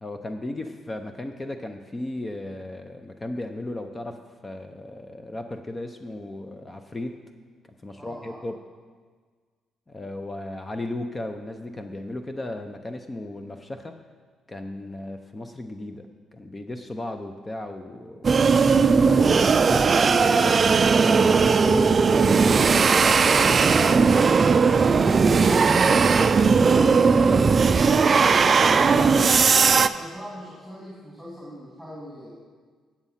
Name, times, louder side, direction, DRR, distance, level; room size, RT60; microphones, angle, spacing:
voice 1, 0.0-7.2 7.8-8.6 9.9-14.0 14.5-16.1 16.3-24.4 24.8-26.3 26.7-29.3, left 1 dB, 25° left, 6 dB, 0.6 m, -35 dB
voice 2, 8.0-8.4 29.9-32.4, equal, 5° left, -5 dB, 2.4 m, -41 dB
sound 1, 18.2-29.9, right 5 dB, 40° right, 0.3 m, -18 dB
8.7 x 7.2 x 5.6 m, 1.5 s
cardioid pair, 90°, 0 cm